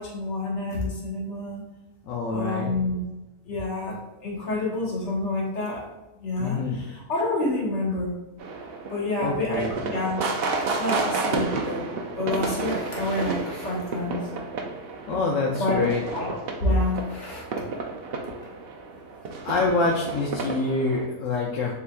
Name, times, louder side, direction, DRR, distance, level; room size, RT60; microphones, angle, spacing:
voice 1, 0.0-1.7 2.3-3.0 3.5-5.8 6.2-8.1 8.9-11.9 12.2-14.2 15.6-15.9 16.1-17.7, left 2 dB, 50° left, -3 dB, 1.4 m, -28 dB
voice 2, 2.1-2.8 6.4-6.8 9.2-9.7 15.1-16.0 19.4-21.7, left 3 dB, 65° left, -2 dB, 0.8 m, -26 dB
sound 1, 8.4-21.1, right 3 dB, 75° right, 0.5 m, -31 dB
6.9 x 2.7 x 2.3 m, 1.0 s
omnidirectional pair, 1.6 m